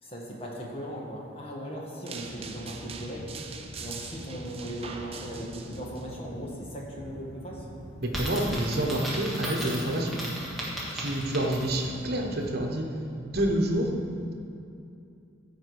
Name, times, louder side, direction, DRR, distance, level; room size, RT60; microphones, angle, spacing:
voice 1, 0.0-3.3 3.8-7.6, equal, 30° left, -2 dB, 1.6 m, -38 dB
sound 1, 2.1-12.7, equal, 75° left, 1.6 m, -45 dB
sound 2, 2.1-6.1, right 5 dB, 30° right, 0.6 m, -43 dB
Coin (dropping), 8.0-11.9, right 1 dB, ahead, 1.6 m, -36 dB
voice 2, 8.0-10.2 10.9-12.9 13.2-13.9, right 1 dB, 55° right, 1 dB, 1.3 m, -28 dB
14.0 x 5.0 x 4.8 m, 2.6 s
head